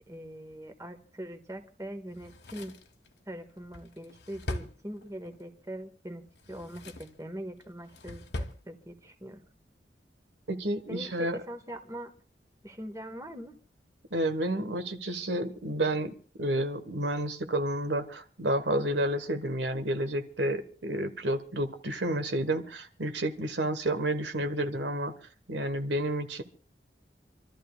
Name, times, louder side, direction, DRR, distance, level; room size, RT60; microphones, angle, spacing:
voice 1, 0.1-2.7 3.3-6.2 6.5-9.4 10.9-12.1 12.6-13.5, equal, 20° right, 5 dB, 1.5 m, -42 dB
Drawer open or close, 2.1-5.4 6.3-7.2 7.6-8.6 8.9-9.0, left 1 dB, 75° left, 1.4 m, -41 dB
voice 2, 10.5-11.4 14.1-16.1 16.4-25.1 25.5-26.4, right 1 dB, 85° right, 7 dB, 1.4 m, -30 dB
28.0 x 13.0 x 2.4 m, 0.40 s
head